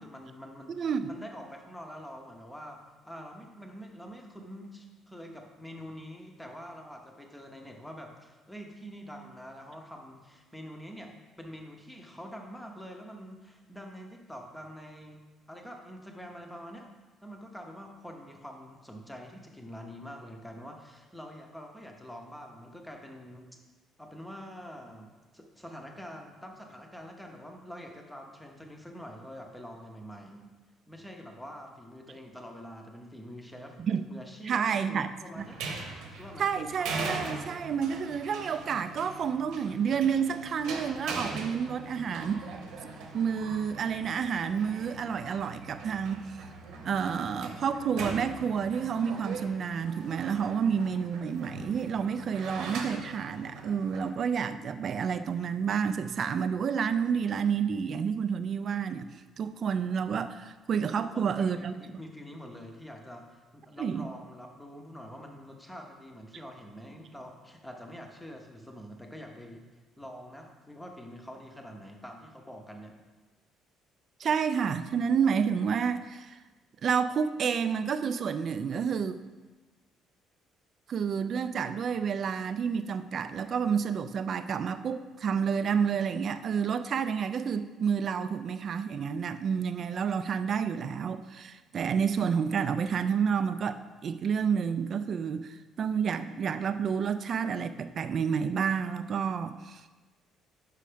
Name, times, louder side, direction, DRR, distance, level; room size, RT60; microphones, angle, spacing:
voice 1, 0.0-2.8 3.0-15.2 15.5-16.9 17.2-23.6 24.0-30.5 30.9-33.8 34.1-35.6 36.1-36.4 61.0-73.0, equal, 5° left, 2 dB, 0.7 m, -45 dB
voice 2, 0.7-1.1 33.8-34.0 34.4-35.1 35.4-35.5 36.4-42.5 43.1-46.4 46.8-59.1 59.4-61.8 63.8-64.1 74.2-76.4 76.8-79.2 80.9-99.8, right 7 dB, 40° right, 11 dB, 0.3 m, -29 dB
sound 1, 35.4-54.1, right 4 dB, 80° right, 1.0 m, -41 dB
5.6 x 5.1 x 5.0 m, 1.2 s
cardioid pair, 155°, 0 cm